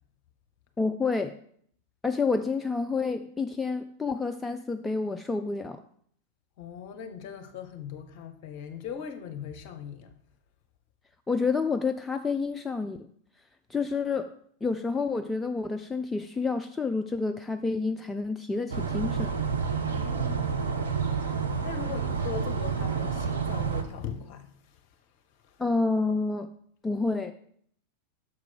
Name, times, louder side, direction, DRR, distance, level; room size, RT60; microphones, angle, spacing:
voice 1, 0.8-1.4 2.0-5.8 11.3-13.1 13.7-14.3 14.6-19.3 25.6-26.5 26.8-27.3, left 4 dB, 10° left, 0.3 m, -29 dB
voice 2, 6.6-10.1 19.8-20.9 21.6-24.8 25.4-25.6, left 7 dB, 45° left, 0.9 m, -40 dB
sound 1, 18.7-23.8, right 6 dB, 70° right, 0.8 m, -29 dB
6.7 x 4.7 x 5.8 m
figure-of-eight pair, 90°, 0 cm